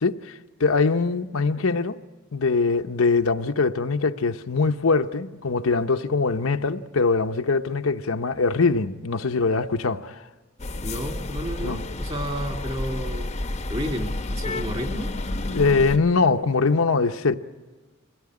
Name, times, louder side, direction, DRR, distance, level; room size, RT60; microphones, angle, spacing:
voice 1, 0.0-2.0 2.3-10.2 11.6-11.8 15.5-17.3, left 4 dB, 80° left, 0.8 m, -22 dB
sound 1, 10.6-16.0, left 2 dB, 30° left, 0.8 m, -30 dB
voice 2, 10.8-13.3 13.7-15.1, equal, 30° right, 2.6 m, -31 dB
23.5 x 17.0 x 9.7 m
head